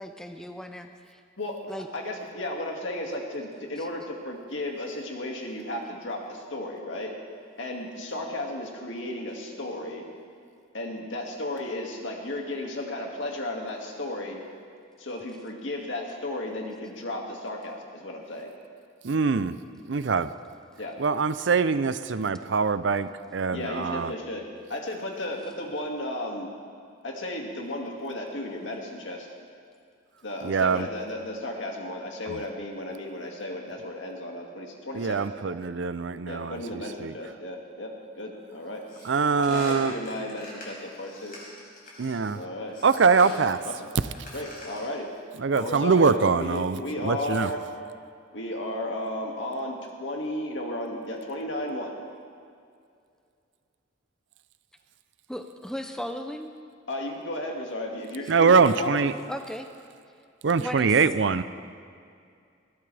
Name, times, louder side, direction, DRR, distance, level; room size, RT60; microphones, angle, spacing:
voice 1, 0.0-1.2 1.7-1.9 3.8-3.9 55.3-56.5 59.3-59.7 60.6-61.0, equal, 5° left, 5 dB, 0.6 m, -36 dB
voice 2, 1.9-7.1 7.6-10.0 10.7-14.4 15.0-18.5 20.8-21.0 23.5-24.4 24.7-26.5 27.0-29.3 30.2-35.3 36.3-38.8 39.4-41.4 42.3-42.8 43.2-43.9 44.3-45.1 45.5-47.6 48.3-52.0 56.9-59.0, left 1 dB, 70° left, 0 dB, 2.2 m, -34 dB
voice 3, 19.0-19.6 19.9-20.3 21.0-24.1 30.4-30.9 32.3-32.4 34.9-37.1 39.0-39.9 42.0-42.4 42.8-43.6 45.4-47.5 58.3-59.1 60.4-61.4, right 5 dB, 65° right, 13 dB, 0.5 m, -23 dB
sound 1, 38.9-42.3 42.7-43.5 44.0-45.0, left 1 dB, 45° left, 5.0 m, -44 dB
21.0 x 16.0 x 3.4 m, 2.3 s
head